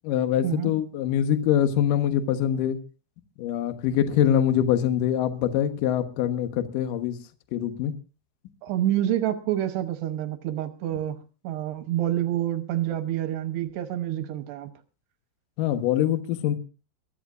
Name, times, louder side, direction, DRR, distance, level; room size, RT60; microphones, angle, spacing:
voice 1, 0.0-2.8 3.4-7.2 7.5-7.9 15.6-16.5, left 10 dB, 65° left, 2.2 m, -24 dB
voice 2, 8.6-14.7, right 12 dB, 75° right, 2.9 m, -28 dB
22.5 x 14.0 x 2.5 m
omnidirectional pair, 5.3 m